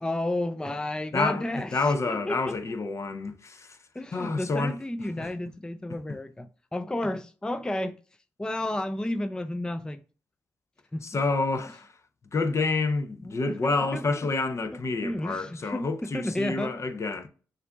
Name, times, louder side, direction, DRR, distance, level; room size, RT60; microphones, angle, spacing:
voice 1, 0.0-2.4 4.0-8.0 8.4-10.0 10.9-11.0 13.2-14.1 15.0-16.8, left 1 dB, 10° left, 0.4 m, -32 dB
voice 2, 1.1-1.4 1.7-3.8 4.1-4.7 5.2-5.3 11.0-11.9 12.3-17.3, left 3 dB, 45° left, 0.7 m, -28 dB
6.6 x 2.6 x 2.3 m
hypercardioid pair, 45°, 7 cm